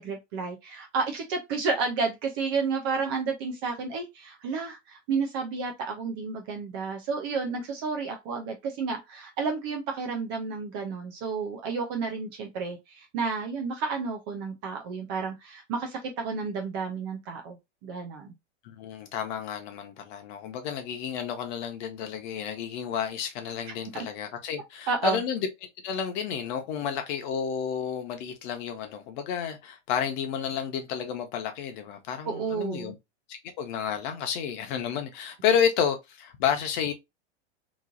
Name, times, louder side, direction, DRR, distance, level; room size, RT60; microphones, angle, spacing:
voice 1, 0.0-17.6 17.8-18.3 23.9-24.1 24.9-25.2 32.2-32.9, right 4 dB, 20° right, 0.3 m, -31 dB
voice 2, 18.6-25.5 25.8-32.9 33.3-36.9, left 8 dB, 40° left, 0.9 m, -31 dB
3.0 x 2.4 x 3.6 m
supercardioid pair, 155°, 37 cm